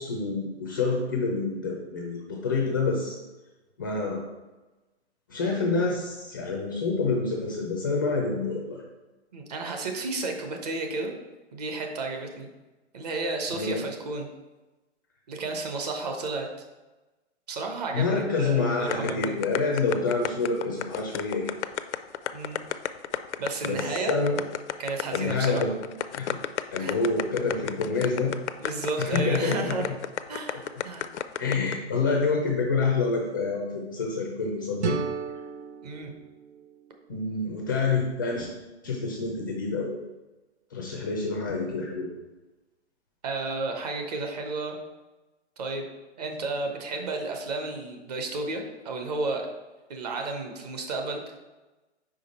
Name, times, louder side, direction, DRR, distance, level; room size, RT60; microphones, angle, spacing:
voice 1, 0.0-3.2 3.8-4.2 5.3-8.8 13.5-13.8 17.9-21.6 23.6-24.4 25.1-25.8 26.1-26.4 26.7-28.3 29.0-29.8 31.4-35.0 37.1-38.5 38.8-40.0 40.7-42.1, left 4 dB, 20° left, 0 dB, 0.4 m, -27 dB
voice 2, 9.3-11.1 11.5-12.5 12.9-14.3 15.3-16.5 17.5-19.5 22.3-22.6 23.4-24.2 24.8-25.6 26.8-27.0 28.6-29.9 30.3-31.1 35.8-36.1 43.2-44.8 45.6-45.8 46.2-49.5 49.9-51.4, right 3 dB, 35° right, 3 dB, 0.9 m, -32 dB
sound 1, 18.9-31.8, left 10 dB, 80° left, 0.5 m, -31 dB
sound 2, 34.8-37.7, right 7 dB, 70° right, 0.7 m, -35 dB
5.0 x 5.0 x 4.1 m, 1.1 s
hypercardioid pair, 155°, 34 cm